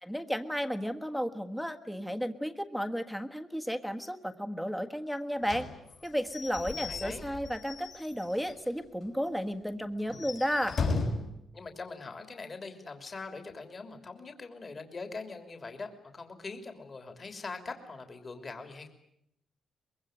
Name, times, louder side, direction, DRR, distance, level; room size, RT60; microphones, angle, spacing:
voice 1, 0.0-5.7 6.0-10.8, equal, 5° left, 7 dB, 1.5 m, -33 dB
Slam / Squeak / Wood, 5.5-8.7 9.0-9.1 9.4-9.5 10.0-11.3, left 3 dB, 55° left, 6.0 m, -36 dB
voice 2, 6.6-7.2 11.5-18.9, left 3 dB, 30° left, 6 dB, 3.2 m, -42 dB
24.0 x 23.0 x 9.2 m, 0.76 s
cardioid pair, 145°, 0 cm